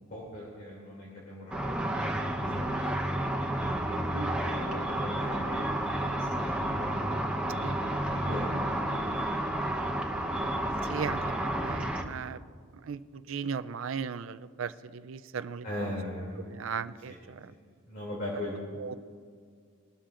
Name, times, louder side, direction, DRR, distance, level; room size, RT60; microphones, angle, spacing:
voice 1, 0.0-7.0 8.0-9.6 15.6-16.7 17.0-17.2 17.5-17.6 17.9-18.6, left 1 dB, 50° left, -5 dB, 2.7 m, -41 dB
Car / Traffic noise roadway noise / Engine, 1.5-12.0, right 1 dB, 5° right, 0.9 m, -31 dB
voice 2, 10.6-12.4 12.8-13.0 13.3-15.9 16.5-17.4 18.8-18.9, right 6 dB, 65° right, 13 dB, 0.4 m, -37 dB
21.0 x 13.0 x 2.5 m, 2.1 s
head